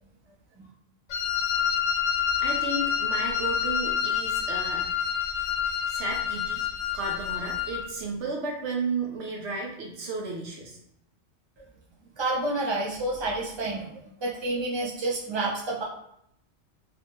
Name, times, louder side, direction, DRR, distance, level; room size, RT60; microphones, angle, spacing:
Wind instrument woodwind instrument, 1.1-7.8, left 8 dB, 80° left, 0.9 m, -28 dB
voice 1, 2.4-4.9 5.9-6.7 6.9-10.8, right 3 dB, 75° right, 0 dB, 1.0 m, -33 dB
voice 2, 12.2-13.9 14.2-15.8, right 2 dB, 25° right, -5 dB, 0.9 m, -29 dB
3.3 x 2.9 x 3.1 m, 0.74 s
omnidirectional pair, 1.2 m